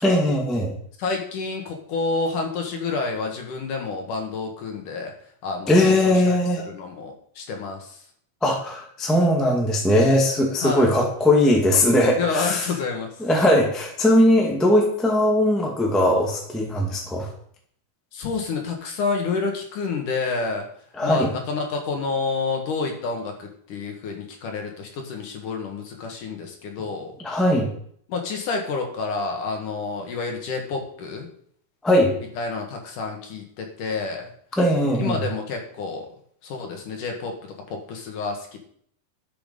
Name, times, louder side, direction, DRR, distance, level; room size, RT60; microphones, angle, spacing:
voice 1, 0.0-0.7 5.7-6.6 8.4-12.7 13.2-17.3 21.0-21.3 27.2-27.7 31.8-32.1 34.6-35.2, left 1 dB, ahead, -1 dB, 0.6 m, -19 dB
voice 2, 1.0-5.1 5.4-6.4 6.7-8.0 10.6-10.9 12.2-13.2 18.1-20.7 21.0-27.1 28.1-31.3 32.4-34.3 35.0-36.1 36.4-38.6, left 4 dB, 60° left, 2 dB, 2.9 m, -29 dB
12.0 x 7.1 x 5.4 m, 0.63 s
omnidirectional pair, 4.6 m